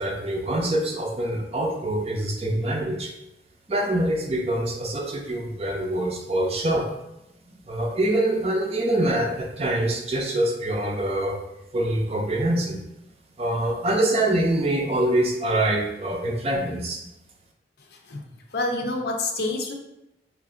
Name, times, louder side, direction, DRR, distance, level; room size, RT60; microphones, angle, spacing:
voice 1, 0.0-3.1 3.7-6.9 7.7-11.4 11.7-12.8 13.4-17.1, right 1 dB, 35° right, 1 dB, 0.4 m, -25 dB
voice 2, 17.8-18.2 18.5-19.7, left 2 dB, 65° left, 2 dB, 0.5 m, -28 dB
3.2 x 2.5 x 3.7 m, 0.88 s
head